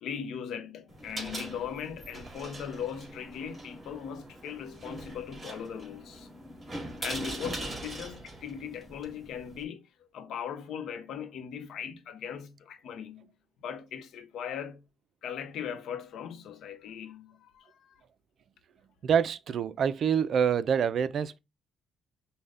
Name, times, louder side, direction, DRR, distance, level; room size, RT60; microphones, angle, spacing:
voice 1, 0.0-6.3 7.0-9.8 10.1-13.3 13.6-14.8 15.2-18.0, left 8 dB, 75° left, 0.7 m, -39 dB
sound 1, 0.9-9.6, right 1 dB, 25° right, 2.1 m, -42 dB
voice 2, 19.0-21.4, right 7 dB, 60° right, 0.4 m, -26 dB
5.4 x 2.2 x 3.7 m
cardioid pair, 90°, 0 cm